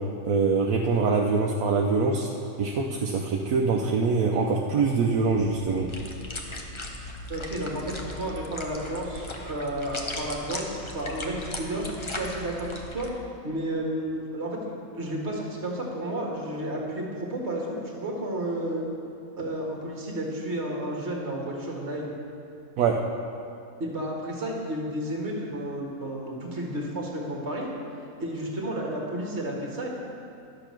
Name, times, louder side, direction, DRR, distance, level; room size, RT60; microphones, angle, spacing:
voice 1, 0.3-2.3 2.6-5.9 22.8-23.0, right 4 dB, 80° right, 1 dB, 1.2 m, -24 dB
sound 1, 5.5-13.1, left 1 dB, 25° left, 0.7 m, -38 dB
voice 2, 7.3-13.1 13.4-18.8 19.4-22.1 23.8-27.7 28.2-29.9, right 1 dB, 50° right, -1 dB, 1.9 m, -32 dB
11.5 x 7.0 x 5.9 m, 2.6 s
omnidirectional pair, 1.5 m